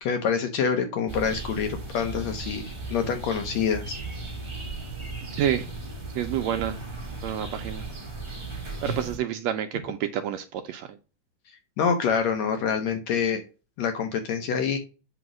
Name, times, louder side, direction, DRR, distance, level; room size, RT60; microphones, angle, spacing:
voice 1, 0.0-4.0 11.8-13.4 13.8-14.8, left 6 dB, 70° left, 6 dB, 1.9 m, -26 dB
sound 1, 1.1-9.2, right 2 dB, 20° right, 0.9 m, -36 dB
voice 2, 6.1-6.8 7.2-7.8 8.8-10.9, right 10 dB, 80° right, 7 dB, 1.6 m, -28 dB
7.9 x 2.9 x 6.0 m, 0.32 s
omnidirectional pair, 3.5 m